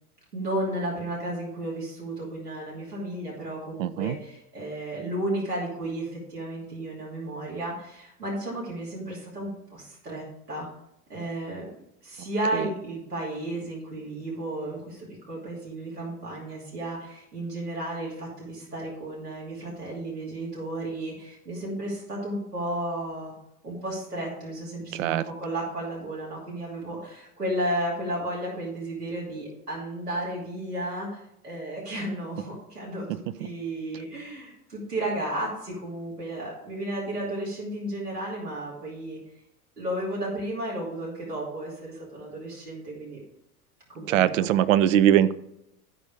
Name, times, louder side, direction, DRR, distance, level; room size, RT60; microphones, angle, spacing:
voice 1, 0.3-10.7 11.1-11.7 12.0-23.3 23.6-39.2 39.8-43.2 43.9-44.5, right 1 dB, 85° right, -6 dB, 2.8 m, -33 dB
voice 2, 3.8-4.2 12.5-12.7 24.9-25.2 44.1-45.3, right 11 dB, 55° right, 15 dB, 0.6 m, -21 dB
12.5 x 5.2 x 5.1 m, 0.81 s
figure-of-eight pair, 85°, 46 cm